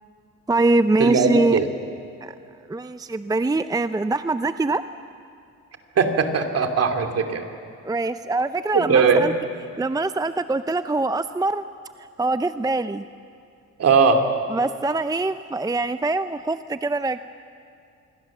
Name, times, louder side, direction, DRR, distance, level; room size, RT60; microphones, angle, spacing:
voice 1, 0.5-1.6 2.2-2.3 2.7-4.8 7.8-9.3 9.8-11.6 12.0-13.0 14.5-17.2, right 2 dB, 10° right, 11 dB, 0.6 m, -23 dB
voice 2, 1.0-1.7 6.0-7.5 8.7-9.3 13.8-14.2, right 5 dB, 55° right, 5 dB, 2.8 m, -19 dB
26.5 x 22.5 x 7.4 m, 2.4 s
cardioid pair, 90°, 30 cm